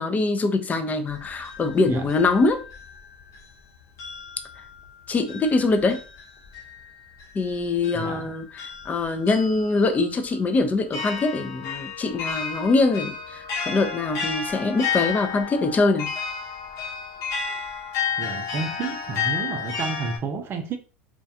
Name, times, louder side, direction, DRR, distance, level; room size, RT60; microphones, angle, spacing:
voice 1, 0.0-2.6 5.1-6.0 7.3-16.1, left 3 dB, 25° left, 0.4 m, -23 dB
sound 1, 1.1-3.6 4.0-20.2, left 6 dB, 50° left, 0.8 m, -33 dB
voice 2, 7.9-8.3 18.2-20.8, right 4 dB, 35° right, 0.5 m, -31 dB
2.4 x 2.2 x 2.6 m
hypercardioid pair, 100°, 7 cm